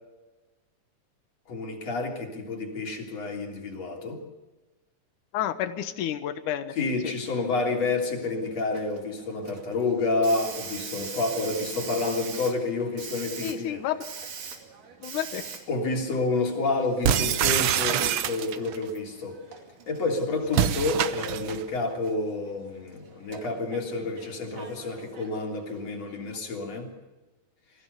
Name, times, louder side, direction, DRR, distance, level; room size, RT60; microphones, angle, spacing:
voice 1, 1.5-4.2 6.8-13.8 15.7-19.4 19.9-26.9, left 3 dB, 55° left, 1 dB, 4.5 m, -29 dB
voice 2, 5.3-6.7 7.0-7.1 13.4-14.1 15.0-15.4 20.6-20.7, left 11 dB, 80° left, 10 dB, 2.7 m, -30 dB
Hiss, 8.0-26.4, right 6 dB, 90° right, 4.1 m, -44 dB
sound 1, 17.0-18.8 20.5-21.6, right 10 dB, 70° right, 1.3 m, -25 dB
28.0 x 16.0 x 6.9 m, 1.2 s
omnidirectional pair, 3.6 m